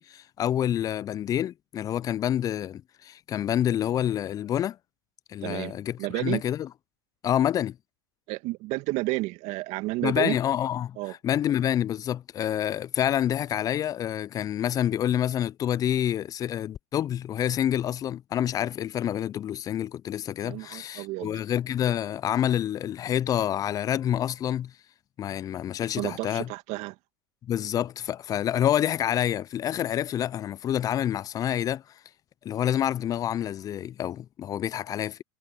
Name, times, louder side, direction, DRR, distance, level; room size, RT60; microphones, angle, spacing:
voice 1, 0.0-4.8 5.3-6.7 7.2-7.8 10.0-24.7 25.2-26.5 27.4-31.8 32.4-35.2, left 10 dB, 25° left, 0.3 m, -27 dB
voice 2, 5.4-5.7 6.0-6.4 8.3-10.4 11.0-11.1 20.4-21.4 25.9-27.0, right 21 dB, 50° right, 2.0 m, -31 dB
hypercardioid pair, 105°, 14 cm